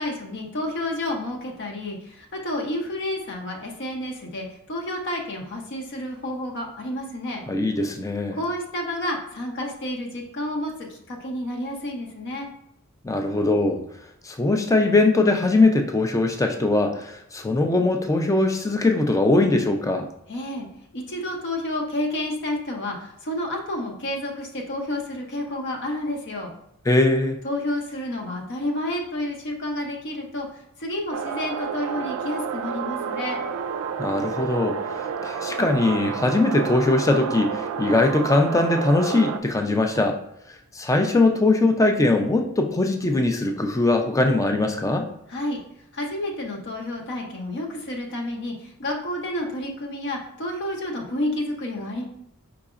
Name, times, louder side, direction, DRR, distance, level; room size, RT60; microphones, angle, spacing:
voice 1, 0.0-7.4 8.3-12.5 20.3-20.7 20.9-26.5 27.4-33.4 45.3-45.6 45.9-52.0, left 1 dB, 50° left, 1 dB, 0.7 m, -30 dB
voice 2, 7.5-8.4 13.0-13.8 14.2-20.1 26.9-27.4 34.0-34.8 35.2-40.2 40.7-45.1, left 2 dB, 15° left, 5 dB, 0.4 m, -21 dB
sound 1, 31.1-39.4, right 6 dB, 70° right, 0.3 m, -30 dB
4.8 x 3.9 x 2.4 m, 0.76 s
head